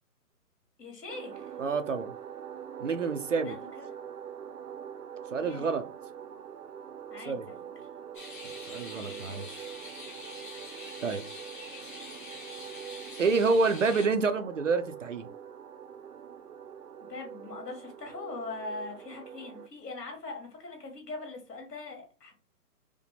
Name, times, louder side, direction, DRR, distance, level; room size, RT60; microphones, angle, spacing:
voice 1, 0.8-1.5 3.4-3.9 5.4-5.8 7.1-7.6 8.9-9.4 11.7-11.9 17.0-22.4, left 3 dB, 80° left, 2.1 m, -42 dB
sound 1, 1.1-19.7, right 8 dB, 70° right, 0.8 m, -44 dB
voice 2, 1.6-2.1 2.8-3.5 5.3-5.8 7.3-7.4 8.7-9.7 11.0-11.2 13.2-15.3, right 4 dB, 55° right, 0.5 m, -28 dB
sound 2, 8.1-14.1, left 2 dB, 30° left, 0.9 m, -45 dB
5.0 x 2.1 x 3.3 m
hypercardioid pair, 170°, 47 cm